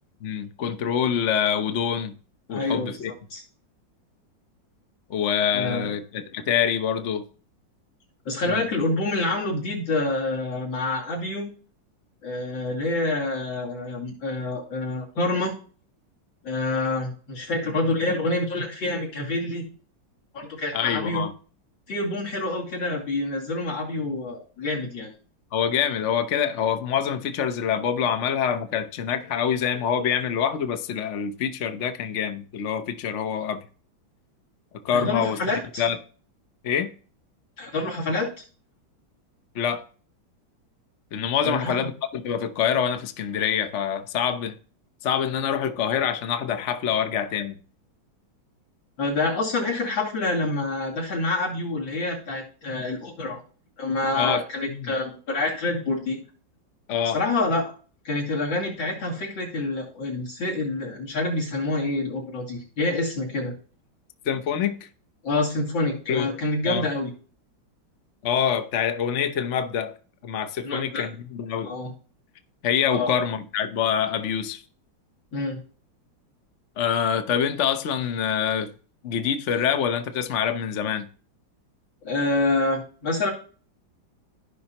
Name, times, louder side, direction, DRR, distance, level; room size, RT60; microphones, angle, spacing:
voice 1, 0.2-2.1 2.5-3.1 5.1-7.2 8.4-8.7 20.7-21.3 25.5-33.6 34.8-35.4 35.8-36.0 36.6-36.9 39.5-39.8 41.1-44.5 45.0-47.6 54.2-54.4 54.7-54.9 56.9-57.2 64.2-64.9 66.1-66.3 66.6-66.8 68.2-70.0 70.2-71.7 72.6-74.6 76.8-78.7 79.0-81.1, left 8 dB, 55° left, 0.8 m, -25 dB
voice 2, 2.5-3.4 5.5-5.9 8.2-11.5 12.2-15.5 16.4-19.6 20.3-21.2 21.9-25.1 34.9-35.8 37.6-38.4 41.4-41.9 49.0-53.4 53.8-56.2 57.1-57.7 58.0-63.5 65.2-67.1 70.6-71.1 71.6-71.9 72.9-73.1 75.3-75.6 82.0-83.3, left 2 dB, 70° left, 3.3 m, -27 dB
15.0 x 5.5 x 2.9 m
omnidirectional pair, 2.2 m